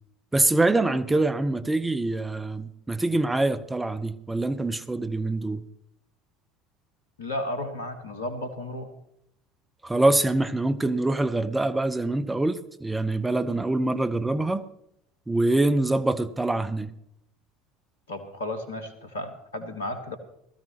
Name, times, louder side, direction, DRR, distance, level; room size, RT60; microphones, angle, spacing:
voice 1, 0.3-5.6 9.8-14.6 15.3-16.9, right 2 dB, 10° right, 0.7 m, -24 dB
voice 2, 7.2-8.9 18.1-20.2, left 1 dB, 75° left, 1.6 m, -33 dB
18.5 x 14.0 x 3.0 m
figure-of-eight pair, 65°, 0 cm